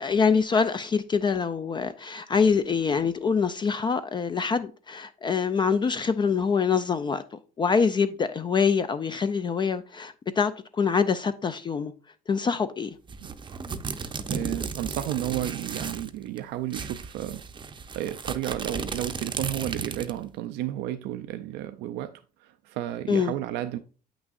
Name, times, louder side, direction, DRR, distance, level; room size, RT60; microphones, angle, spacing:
voice 1, 0.0-7.2 7.6-11.9 12.3-12.9 23.1-23.3, left 5 dB, 30° left, 0.4 m, -25 dB
sound 1, 13.1-16.1 16.4-16.5 16.7-20.2, right 5 dB, 30° right, 0.6 m, -35 dB
voice 2, 14.3-17.4 17.9-23.8, right 13 dB, 85° right, 0.4 m, -32 dB
8.2 x 6.1 x 2.4 m
cardioid pair, 110°, 17 cm